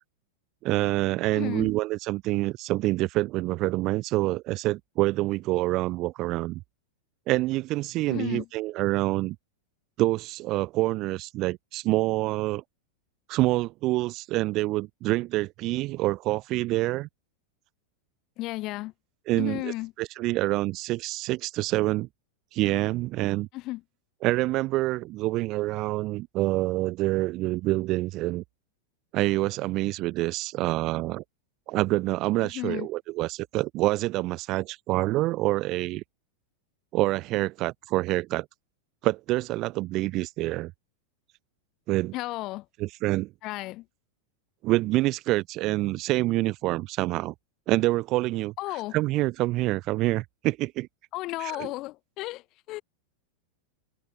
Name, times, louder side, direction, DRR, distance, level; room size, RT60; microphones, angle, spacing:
voice 1, 0.6-6.6 7.3-9.4 10.0-12.6 13.3-17.1 19.3-22.1 22.5-23.5 24.2-28.4 29.1-31.2 31.7-36.0 36.9-38.5 39.0-40.7 41.9-42.1 42.8-43.3 44.6-47.3 47.7-48.5 48.9-50.9 51.4-51.7, right 18 dB, 45° right, 0.5 m, -26 dB
voice 2, 1.3-1.7 8.1-8.5 18.4-18.9 19.4-19.9 23.5-23.8 32.4-32.9 42.1-42.6 43.4-43.8 48.6-49.0 51.1-52.8, left 19 dB, 45° left, 1.3 m, -34 dB
hypercardioid pair, 95°, 0 cm